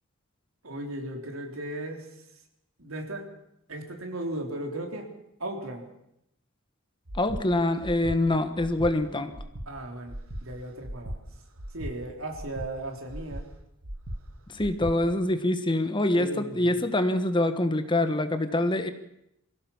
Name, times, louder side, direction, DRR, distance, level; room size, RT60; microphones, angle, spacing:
voice 1, 0.6-2.1 2.8-3.3 3.7-5.1 5.4-5.9 9.0-9.1 9.7-11.2 11.7-13.4 16.1-16.9, right 1 dB, 75° right, 3 dB, 3.5 m, -36 dB
Breathing, 7.1-7.4 7.8-8.2 8.6-8.9 9.3-9.7 10.1-10.4 10.8-11.2 11.6-11.9 12.3-12.7 13.1-13.4 13.8-14.2 14.6-14.9, equal, 90° right, 2.0 m, -37 dB
voice 2, 7.2-9.3 14.5-18.9, left 1 dB, 25° left, 9 dB, 1.3 m, -25 dB
23.0 x 16.0 x 7.1 m, 0.80 s
head